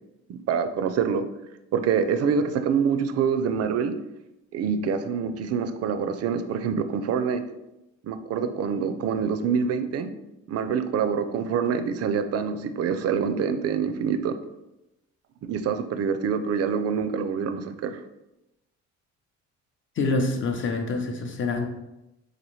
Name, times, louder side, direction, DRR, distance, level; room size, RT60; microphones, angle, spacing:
voice 1, 0.3-1.2 1.7-3.9 4.5-7.4 8.0-10.1 10.5-14.4 15.5-18.0, right 6 dB, 55° right, 10 dB, 0.4 m, -26 dB
voice 2, 20.0-21.7, left 3 dB, 40° left, 4 dB, 0.6 m, -26 dB
4.1 x 2.5 x 3.1 m, 0.93 s
cardioid pair, 90°, 30 cm